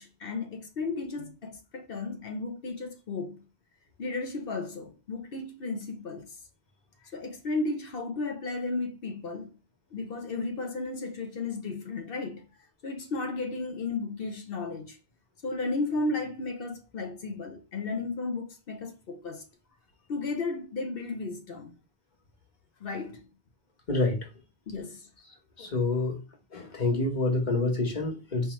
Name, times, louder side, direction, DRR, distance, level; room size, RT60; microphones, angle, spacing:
voice 1, 0.0-3.4 4.0-6.4 7.1-9.5 9.9-12.4 12.8-15.0 15.4-19.4 20.1-21.7 22.8-23.3 24.7-25.1, left 3 dB, 65° left, 1.0 m, -34 dB
voice 2, 23.9-24.2 25.6-26.2 26.5-28.5, left 2 dB, 45° left, 1.4 m, -27 dB
4.6 x 3.4 x 3.1 m
omnidirectional pair, 1.0 m